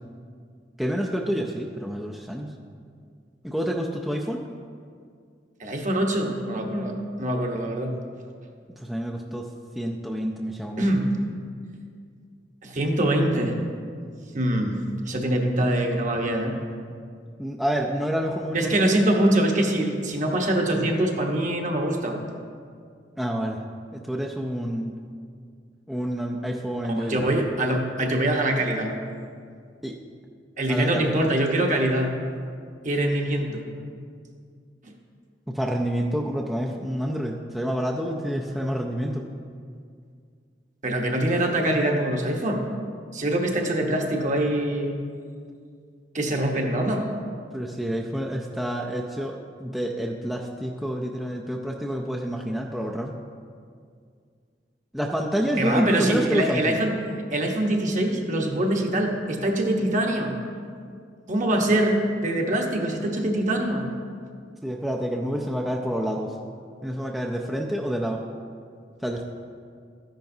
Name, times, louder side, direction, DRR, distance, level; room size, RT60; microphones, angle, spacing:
voice 1, 0.8-2.5 3.4-4.4 8.8-9.5 9.8-10.8 17.4-19.0 23.2-23.6 23.9-25.0 25.9-27.4 29.8-30.0 30.7-31.1 35.5-39.2 47.5-53.1 54.9-56.8 64.6-66.3 66.8-68.2 69.0-69.2, equal, ahead, -1 dB, 0.5 m, -28 dB
voice 2, 5.6-7.9 10.8-11.1 12.6-13.6 14.3-16.5 18.5-22.2 26.9-29.0 30.6-32.1 32.8-33.7 34.8-34.9 40.8-42.7 43.1-45.0 46.1-47.1 55.5-56.9 57.3-60.3 61.3-63.9, right 1 dB, 45° right, 1 dB, 1.1 m, -24 dB
13.0 x 10.5 x 2.7 m, 2.2 s
head